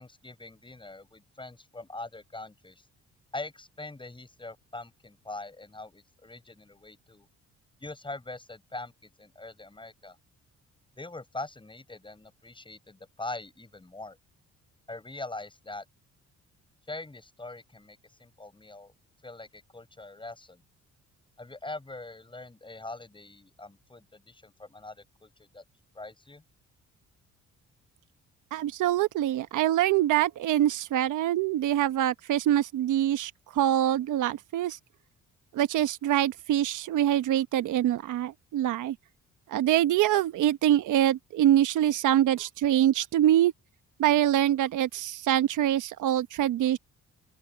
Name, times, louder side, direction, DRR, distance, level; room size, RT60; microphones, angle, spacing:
voice 1, 0.0-2.9 3.3-7.3 7.8-10.2 11.0-14.2 14.9-15.8 16.9-18.9 19.2-20.6 21.4-25.6 25.9-26.4, left 2 dB, 15° left, 7.6 m, -42 dB
voice 2, 28.5-34.8 35.5-39.0 39.5-43.5 44.0-46.8, right 12 dB, 80° right, 1.2 m, -24 dB
open air
cardioid pair, 90°, 30 cm